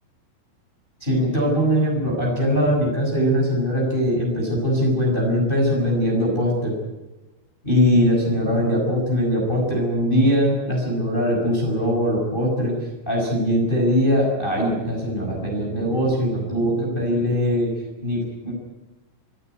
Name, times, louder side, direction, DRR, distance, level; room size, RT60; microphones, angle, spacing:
voice 1, 1.0-6.8 7.6-17.7 18.0-18.5, equal, 10° left, -1 dB, 6.2 m, -21 dB
27.0 x 15.0 x 9.5 m, 1.1 s
omnidirectional pair, 6.0 m